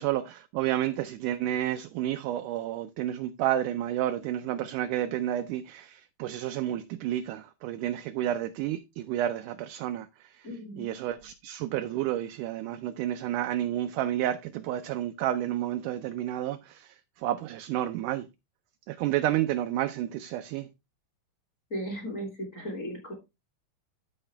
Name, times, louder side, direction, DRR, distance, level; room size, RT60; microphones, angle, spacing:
voice 1, 0.0-10.5 10.8-18.3 18.9-20.7, right 12 dB, 80° right, 1.9 m, -30 dB
voice 2, 10.4-10.9 21.7-23.1, equal, 25° left, 2.6 m, -36 dB
13.0 x 4.9 x 3.3 m
omnidirectional pair, 4.0 m